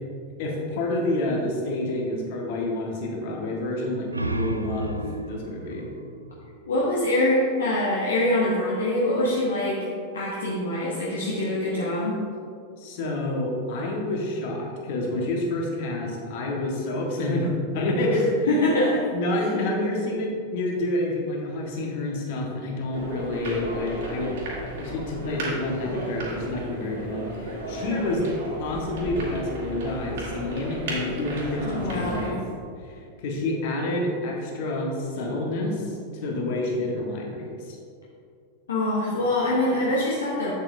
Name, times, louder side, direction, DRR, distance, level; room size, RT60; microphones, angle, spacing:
voice 1, 0.4-5.9 12.8-18.7 19.1-24.3 24.8-28.2 28.6-32.4 32.8-37.8, left 1 dB, 50° left, -1 dB, 1.5 m, -28 dB
sound 1, 3.9-7.3, right 2 dB, 85° right, 0.3 m, -33 dB
voice 2, 6.7-12.2 18.5-19.1 31.6-32.4 38.7-40.5, left 1 dB, 65° left, -5 dB, 1.0 m, -24 dB
sound 2, 22.9-32.3, right 1 dB, 60° right, 1.8 m, -34 dB
8.2 x 7.2 x 2.7 m, 2.3 s
figure-of-eight pair, 90°, 0 cm